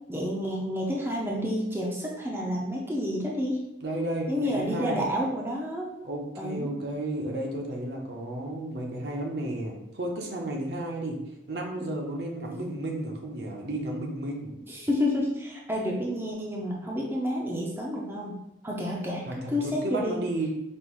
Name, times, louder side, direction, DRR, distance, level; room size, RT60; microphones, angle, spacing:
voice 1, 0.1-3.6 4.3-5.9 6.4-6.7 14.7-20.2, left 1 dB, 10° right, -3 dB, 0.6 m, -30 dB
voice 2, 3.8-5.0 6.0-11.2 11.5-14.5 19.3-19.4 19.6-20.5, right 1 dB, 60° right, 0 dB, 0.7 m, -32 dB
5.3 x 2.5 x 3.0 m, 0.87 s
head